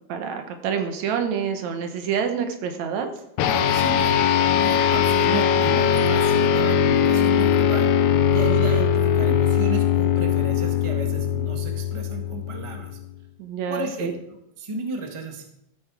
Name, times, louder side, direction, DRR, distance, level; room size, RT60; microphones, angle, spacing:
voice 1, 0.1-3.1 13.4-14.1, right 7 dB, 75° right, 6 dB, 2.4 m, -27 dB
sound 1, 3.4-13.1, left 8 dB, 85° left, 2.2 m, -20 dB
voice 2, 3.5-4.1 4.5-7.9 8.3-13.0 13.7-15.4, right 3 dB, 15° right, 3 dB, 0.9 m, -33 dB
13.5 x 8.7 x 4.8 m, 0.80 s
omnidirectional pair, 3.4 m